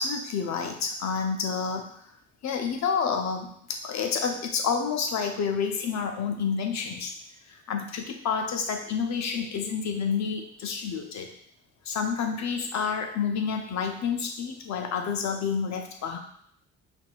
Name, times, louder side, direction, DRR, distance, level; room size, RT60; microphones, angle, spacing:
voice 1, 0.0-1.9 2.4-7.1 7.5-11.3 11.8-16.2, left 6 dB, 65° left, 4 dB, 0.8 m, -29 dB
5.7 x 2.7 x 2.4 m, 0.66 s
cardioid pair, 90°, 30 cm